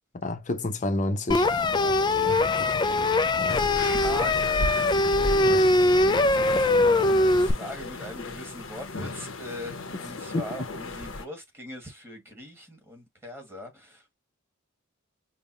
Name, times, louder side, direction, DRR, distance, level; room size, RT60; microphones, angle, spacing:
voice 1, 0.1-1.5 2.3-2.8 3.4-3.6 5.4-5.6 10.3-10.4, left 2 dB, 40° left, 0.8 m, -30 dB
sound 1, 1.3-7.5, left 2 dB, 20° left, 0.4 m, -22 dB
voice 2, 1.7-2.6 3.3-4.7 6.0-14.1, left 1 dB, 10° right, 1.7 m, -41 dB
sound 2, 3.5-11.2, left 2 dB, 75° left, 1.0 m, -35 dB
5.4 x 2.3 x 2.8 m
head